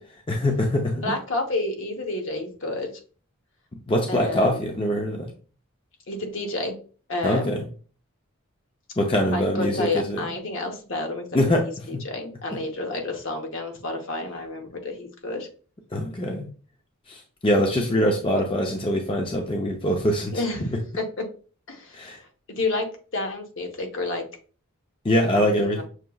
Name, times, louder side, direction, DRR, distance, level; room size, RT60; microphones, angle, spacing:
voice 1, 0.3-1.1 3.9-5.3 7.2-7.7 9.0-10.3 11.3-11.6 15.9-16.5 17.1-20.4 21.9-22.2 25.0-25.8, equal, 25° left, 1 dB, 0.5 m, -23 dB
voice 2, 1.0-2.9 4.1-4.7 6.1-6.8 7.1-7.6 9.3-11.2 11.5-15.5 18.3-18.4 20.3-21.2 21.7-22.2 22.5-24.2 25.3-25.8, left 2 dB, 60° left, 3 dB, 0.9 m, -30 dB
6.3 x 2.9 x 2.3 m, 0.39 s
head